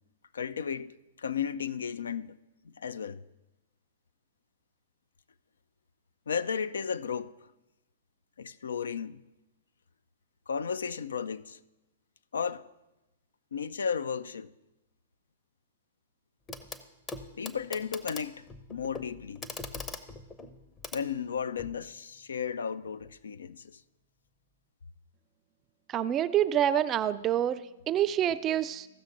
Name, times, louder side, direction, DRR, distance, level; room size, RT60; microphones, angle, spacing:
voice 1, 0.3-2.4 2.6-3.2 6.3-7.5 8.4-9.2 10.5-11.6 12.3-12.7 13.5-14.5 17.3-19.4 20.9-23.8, left 7 dB, 65° left, 0.4 m, -34 dB
Clock, 16.5-16.8 17.1-21.8 23.0-23.1, left 3 dB, 15° left, 0.7 m, -42 dB
voice 2, 25.9-28.9, right 10 dB, 25° right, 0.4 m, -27 dB
15.5 x 6.4 x 3.8 m
figure-of-eight pair, 110°, 0 cm